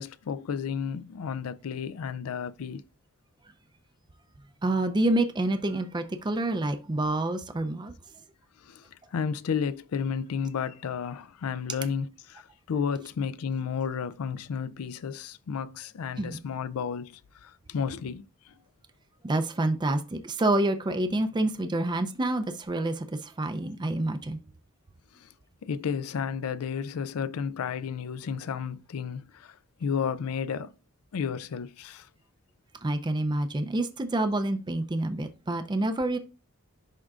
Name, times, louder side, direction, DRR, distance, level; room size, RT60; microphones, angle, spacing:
voice 1, 0.0-2.8 8.6-18.5 25.1-25.3 25.6-30.7 31.1-32.1, left 6 dB, 75° left, 0.4 m, -32 dB
voice 2, 4.6-7.9 16.2-16.4 19.2-24.4 32.8-36.2, right 2 dB, 20° right, 0.4 m, -28 dB
11.0 x 3.7 x 2.4 m
head